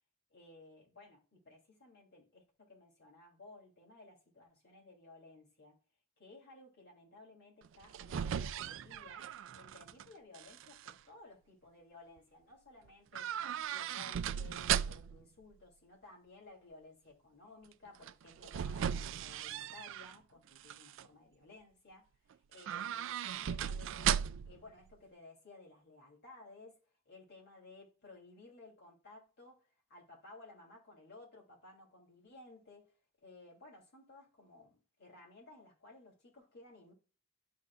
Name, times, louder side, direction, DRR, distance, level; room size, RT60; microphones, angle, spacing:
voice 1, 0.3-5.8 6.2-9.3 9.5-13.4 13.7-22.1 22.5-26.8 27.0-32.8 33.2-36.9, left 2 dB, 55° left, 3.2 m, -57 dB
sound 1, 7.6-10.0 10.3-10.9 13.1-15.2 18.0-20.1 20.6-21.0 22.5-24.6 24.9-25.0, right 9 dB, 65° right, 0.3 m, -37 dB
12.5 x 4.2 x 2.4 m
head